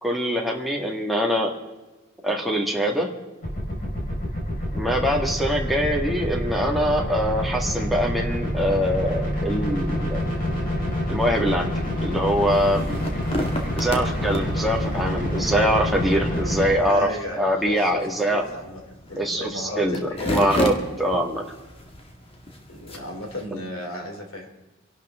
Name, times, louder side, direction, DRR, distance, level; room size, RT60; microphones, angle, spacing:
voice 1, 0.0-1.5 2.2-3.1 4.7-10.2 11.1-11.7 12.0-12.8 13.7-17.1 17.4-18.4 19.2-21.4 23.5-23.6, equal, ahead, -1 dB, 2.0 m, -23 dB
sound 1, 3.4-16.7, equal, 45° left, 5.2 m, -27 dB
sound 2, 12.3-23.5, left 1 dB, 30° left, 1.9 m, -34 dB
voice 2, 16.8-18.8 19.1-20.6 22.7-24.5, left 1 dB, 75° left, 2 dB, 3.4 m, -34 dB
26.0 x 11.5 x 3.7 m, 1.1 s
head